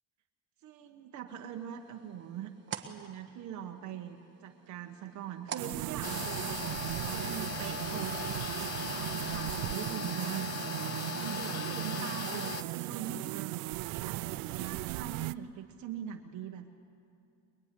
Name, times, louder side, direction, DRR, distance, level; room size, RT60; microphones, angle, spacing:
voice 1, 0.6-2.5 2.8-8.3 8.9-10.8 11.1-16.7, right 9 dB, 50° right, 4 dB, 1.3 m, -43 dB
sound 1, 1.3-6.7, right 8 dB, 30° right, 1.4 m, -47 dB
sound 2, 5.6-15.3, right 19 dB, 70° right, 0.6 m, -37 dB
sound 3, 6.0-12.6, left 6 dB, 45° left, 0.9 m, -38 dB
23.0 x 22.0 x 9.9 m, 2.5 s
cardioid pair, 165°, 36 cm